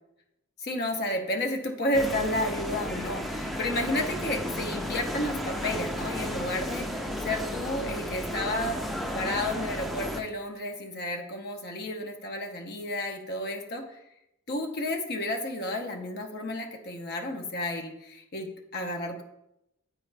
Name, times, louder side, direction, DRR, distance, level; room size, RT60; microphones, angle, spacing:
voice 1, 0.6-8.8 9.1-14.0 14.5-19.2, left 1 dB, 50° left, 3 dB, 0.8 m, -31 dB
sound 1, 1.9-10.2, equal, ahead, 0.4 m, -33 dB
8.2 x 4.9 x 3.3 m, 0.86 s
head